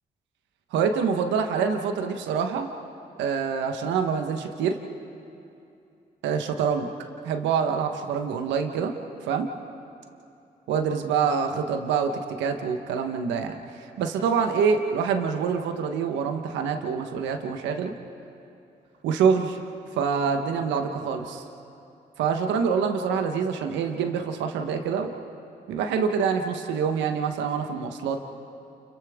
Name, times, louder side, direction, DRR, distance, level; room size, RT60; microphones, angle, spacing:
voice 1, 0.7-2.7 3.2-4.8 6.2-6.9 7.2-8.9 9.3-9.5 10.7-12.1 12.4-13.5 14.0-17.9 19.0-19.6 19.9-21.4 22.2-25.1 25.7-28.2, right 6 dB, 90° right, 5 dB, 1.3 m, -25 dB
30.0 x 29.0 x 3.7 m, 2.7 s
supercardioid pair, 50°, 18 cm